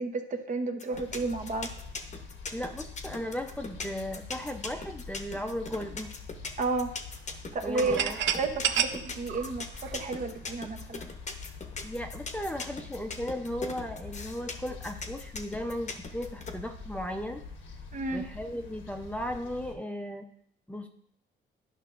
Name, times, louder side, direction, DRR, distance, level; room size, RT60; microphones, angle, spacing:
voice 1, 0.0-1.7 6.6-6.9 7.5-8.1 8.4-11.1 17.9-18.3, right 3 dB, 40° right, 4 dB, 0.8 m, -32 dB
sound 1, 0.8-16.5, left 4 dB, 35° left, 0.9 m, -39 dB
sound 2, 0.9-19.7, left 4 dB, 85° left, 1.2 m, -45 dB
voice 2, 2.5-6.1 7.6-8.2 11.8-17.4 18.1-20.2 20.7-20.9, equal, 5° left, 4 dB, 0.6 m, -36 dB
sound 3, 7.7-10.5, right 9 dB, 70° right, 0.6 m, -30 dB
11.0 x 5.5 x 2.5 m, 0.69 s
cardioid pair, 90°, 20 cm